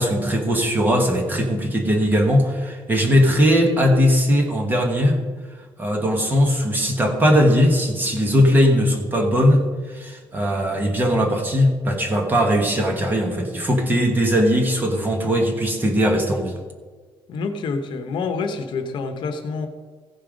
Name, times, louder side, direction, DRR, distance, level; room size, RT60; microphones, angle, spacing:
voice 1, 0.0-5.2 5.8-16.5, equal, 20° right, 3 dB, 1.3 m, -19 dB
voice 2, 17.3-19.7, left 4 dB, 55° left, 7 dB, 1.0 m, -27 dB
15.5 x 5.5 x 5.1 m, 1.5 s
cardioid pair, 170°, 10 cm